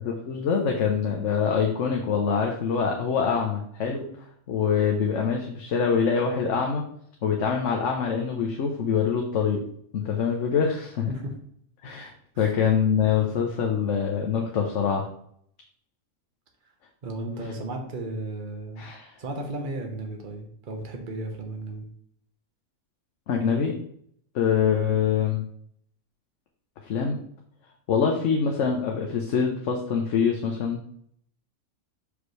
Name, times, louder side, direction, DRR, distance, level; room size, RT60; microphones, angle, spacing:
voice 1, 0.0-4.0 4.5-6.8 7.2-9.6 9.9-11.1 11.8-12.1 12.4-15.1 18.8-19.1 23.3-23.8 24.3-25.4 26.9-27.2 27.9-30.8, left 6 dB, 60° left, 1 dB, 1.1 m, -24 dB
voice 2, 11.1-11.4 12.3-12.5 17.0-18.8 19.2-21.9, right 2 dB, 40° right, 2 dB, 1.1 m, -34 dB
6.4 x 5.1 x 3.2 m, 0.66 s
omnidirectional pair, 1.5 m